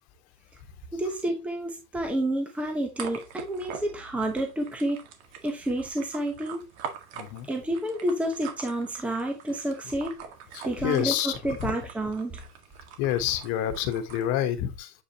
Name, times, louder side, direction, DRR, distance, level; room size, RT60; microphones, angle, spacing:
voice 1, 0.9-5.0 5.4-6.6 7.5-10.2 10.6-12.4, right 1 dB, 5° right, 0.9 m, -29 dB
sound 1, 2.9-14.3, right 7 dB, 70° right, 1.9 m, -44 dB
voice 2, 7.1-7.5 10.5-11.7 13.0-15.0, left 11 dB, 55° left, 1.4 m, -28 dB
8.1 x 5.0 x 2.9 m
cardioid pair, 165°, 33 cm